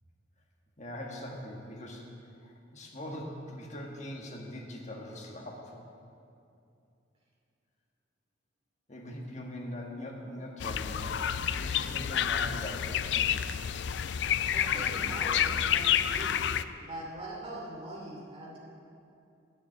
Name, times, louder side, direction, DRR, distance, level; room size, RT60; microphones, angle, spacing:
voice 1, 0.8-2.0 2.4-5.8 8.9-13.3, left 1 dB, 40° left, 0 dB, 1.4 m, -42 dB
sound 1, 10.6-16.6, left 9 dB, 65° left, 0.3 m, -29 dB
voice 2, 14.5-16.4 16.8-18.6, right 1 dB, 30° right, -4 dB, 2.6 m, -42 dB
9.2 x 7.0 x 9.0 m, 2.6 s
head